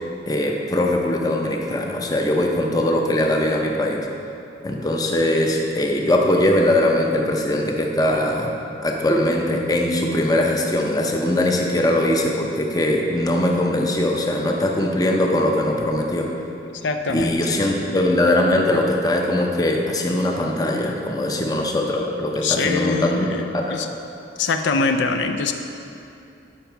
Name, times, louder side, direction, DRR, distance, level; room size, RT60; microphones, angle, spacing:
voice 1, 0.3-4.1 4.6-8.5 8.8-16.3 17.1-23.8, left 1 dB, 20° left, 1 dB, 0.6 m, -21 dB
voice 2, 16.8-17.4 22.4-23.9 24.4-25.5, left 4 dB, 85° left, 6 dB, 0.5 m, -23 dB
9.0 x 5.7 x 4.5 m, 2.7 s
head